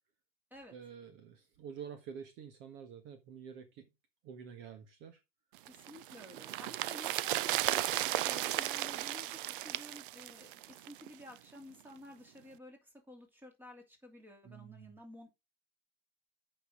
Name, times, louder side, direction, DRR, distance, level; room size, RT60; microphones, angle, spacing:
voice 1, 0.7-3.8 4.2-5.2 5.6-5.9 6.4-6.7 14.4-14.9, right 7 dB, 40° right, 1.5 m, -49 dB
voice 2, 5.7-15.3, left 1 dB, 5° right, 2.7 m, -52 dB
sound 1, 5.7-11.1 11.4-11.5, right 15 dB, 60° right, 0.6 m, -35 dB
8.1 x 5.7 x 4.8 m
supercardioid pair, 140°, 30 cm